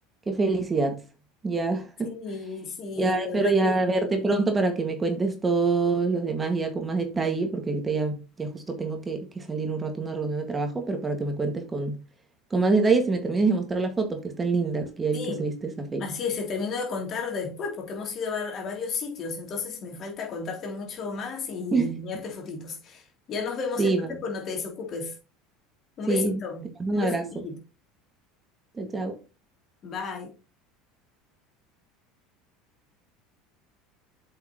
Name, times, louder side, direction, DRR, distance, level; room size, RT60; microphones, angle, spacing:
voice 1, 0.3-1.0 1.4-2.1 3.0-12.0 12.5-16.0 21.7-21.9 23.8-24.1 26.1-26.4 26.8-27.2 28.7-29.2, right 3 dB, 20° right, 1.9 m, -26 dB
voice 2, 2.0-3.7 15.1-15.5 16.0-23.9 24.2-25.2 26.0-26.6 26.9-27.6 29.8-30.3, left 4 dB, 45° left, 3.0 m, -33 dB
7.9 x 5.7 x 3.0 m
hypercardioid pair, 80°, 0 cm